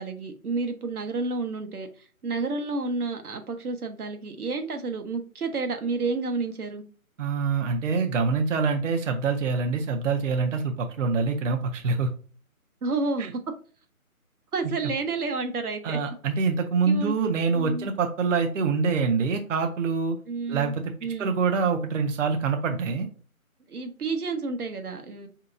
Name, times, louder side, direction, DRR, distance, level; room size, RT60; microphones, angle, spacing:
voice 1, 0.0-6.8 12.8-13.4 14.5-16.0 16.8-17.2 17.5-17.9 20.3-20.7 21.0-21.3 23.7-25.3, right 3 dB, 85° right, 6 dB, 0.9 m, -30 dB
voice 2, 7.2-12.1 13.2-13.3 15.8-20.2 20.5-20.8 21.2-23.1, right 5 dB, 60° right, 5 dB, 0.6 m, -25 dB
4.6 x 2.8 x 2.4 m, 0.40 s
figure-of-eight pair, 155°, 43 cm